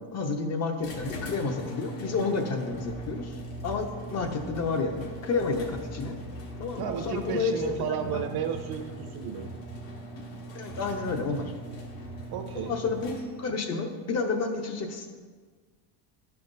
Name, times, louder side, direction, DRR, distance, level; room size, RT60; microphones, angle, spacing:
voice 1, 0.0-3.4 3.6-6.2 6.6-8.3 10.5-11.5 12.7-15.1, left 4 dB, 30° left, 5 dB, 0.9 m, -30 dB
sound 1, 0.8-13.6, right 1 dB, 65° left, 1.9 m, -42 dB
sound 2, 2.7-10.0 10.7-13.2, right 2 dB, 20° right, 0.4 m, -44 dB
voice 2, 6.8-9.5 12.3-12.8, right 8 dB, 50° right, 6 dB, 0.8 m, -33 dB
11.0 x 5.8 x 2.6 m, 1.5 s
cardioid pair, 130°, 50 cm